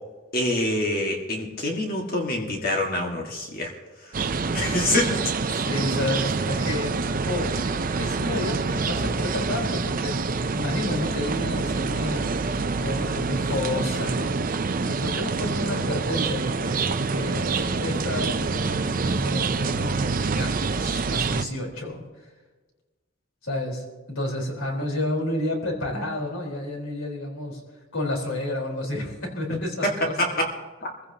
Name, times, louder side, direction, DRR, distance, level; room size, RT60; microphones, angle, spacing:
voice 1, 0.3-3.7 4.5-5.2 29.5-29.9 30.2-30.3, left 1 dB, 45° left, 0 dB, 1.7 m, -26 dB
sound 1, 4.1-21.5, right 4 dB, 40° right, 0.5 m, -26 dB
voice 2, 4.5-5.2 5.4-7.6 8.0-10.2 10.5-12.2 12.8-14.4 14.8-22.3 23.4-27.6 27.9-30.1, left 1 dB, 75° left, -1 dB, 4.2 m, -31 dB
24.5 x 15.5 x 2.9 m, 1.3 s
head